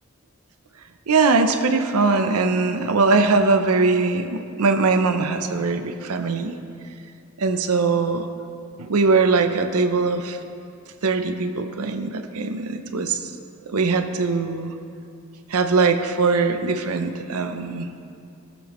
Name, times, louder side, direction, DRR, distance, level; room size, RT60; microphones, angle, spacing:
voice 1, 1.1-6.6 7.4-8.3 8.8-10.4 11.0-13.3 13.7-14.7 15.5-17.9, right 4 dB, 90° right, 7 dB, 0.7 m, -21 dB
17.5 x 7.0 x 3.1 m, 2.5 s
head